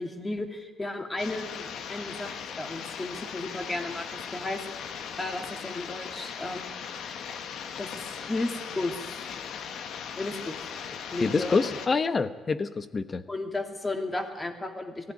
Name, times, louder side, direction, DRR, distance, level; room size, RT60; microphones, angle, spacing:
voice 1, 0.0-4.6 5.2-6.7 7.8-9.2 10.2-10.5 11.1-11.8 13.3-15.1, left 2 dB, 20° left, 5 dB, 2.8 m, -34 dB
sound 1, 1.2-11.9, left 7 dB, 75° left, 1.5 m, -38 dB
voice 2, 11.2-13.2, left 4 dB, 35° left, 12 dB, 1.1 m, -26 dB
19.0 x 14.5 x 9.9 m, 1.3 s
cardioid pair, 90°, 0 cm